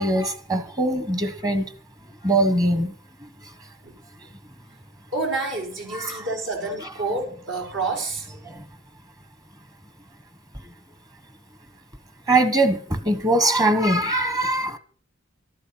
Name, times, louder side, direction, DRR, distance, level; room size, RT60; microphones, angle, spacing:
voice 1, 0.0-1.6 2.2-2.9 5.9-6.2 12.3-14.8, right 1 dB, 20° right, 1.3 m, -21 dB
voice 2, 5.1-8.3, right 3 dB, 65° right, 4.9 m, -28 dB
13.0 x 11.0 x 5.9 m
head